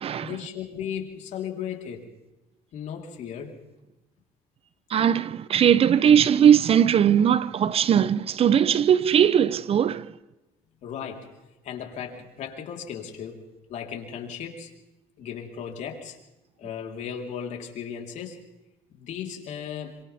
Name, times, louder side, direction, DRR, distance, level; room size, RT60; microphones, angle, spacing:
voice 1, 0.2-2.1 2.7-3.6 10.8-11.3 11.6-14.7 15.2-16.2 16.6-18.4 18.9-20.0, left 8 dB, 65° left, 4.2 m, -36 dB
voice 2, 4.9-10.1, right 9 dB, 50° right, 0.8 m, -19 dB
28.5 x 26.0 x 3.6 m
cardioid pair, 95°, 13 cm